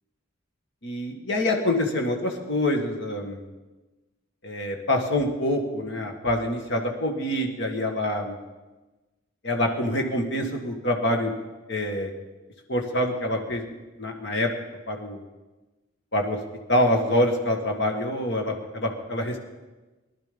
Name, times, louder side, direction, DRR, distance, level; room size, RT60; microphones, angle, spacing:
voice 1, 0.8-3.4 4.4-8.4 9.4-11.3 11.7-12.1 12.7-13.6 14.0-14.5 14.9-15.2 16.1-16.4 16.7-19.4, left 1 dB, 65° left, 2 dB, 1.8 m, -26 dB
19.5 x 11.5 x 5.2 m, 1.2 s
head